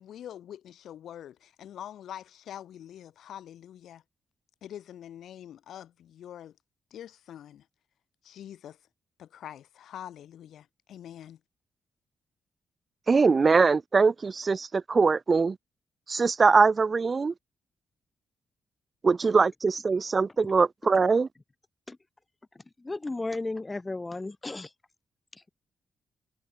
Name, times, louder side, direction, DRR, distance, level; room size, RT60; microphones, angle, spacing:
voice 1, 0.0-4.0 4.6-6.6 6.9-7.7 8.2-8.8 9.2-11.4, left 10 dB, 85° left, 5.1 m, -44 dB
voice 2, 13.1-15.6 16.1-17.3 19.0-21.3, right 4 dB, 35° right, 0.9 m, -22 dB
voice 3, 22.8-24.7, left 2 dB, 20° left, 0.4 m, -34 dB
cardioid pair, 95°, 0 cm